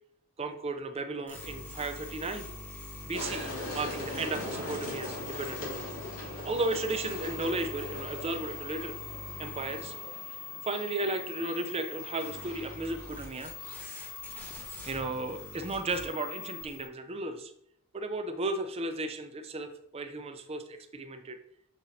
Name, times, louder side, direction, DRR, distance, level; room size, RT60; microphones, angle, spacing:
voice 1, 0.4-2.5 3.1-5.9 6.4-9.0 9.4-10.0 10.6-13.5 14.8-17.5 17.9-21.4, right 2 dB, 25° right, 7 dB, 0.5 m, -34 dB
sound 1, 1.3-16.9, left 4 dB, 10° left, 1.3 m, -43 dB
sound 2, 3.1-14.3, left 1 dB, 85° left, 2.4 m, -42 dB
6.1 x 5.7 x 2.7 m, 0.73 s
head